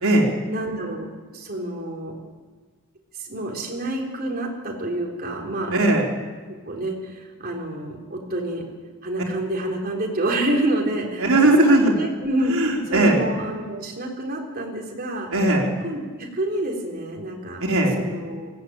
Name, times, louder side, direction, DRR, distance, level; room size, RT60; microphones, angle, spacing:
voice 1, 0.5-1.1 1.3-2.1 3.2-5.8 6.6-8.6 9.0-12.6 12.9-15.3 15.8-17.6 18.0-18.5, right 1 dB, 45° right, 0 dB, 4.0 m, -28 dB
voice 2, 5.7-6.1 11.2-11.9 12.5-13.2 15.3-15.7 17.6-18.0, right 1 dB, 70° right, -1 dB, 3.9 m, -18 dB
20.0 x 16.0 x 9.0 m, 1.4 s
head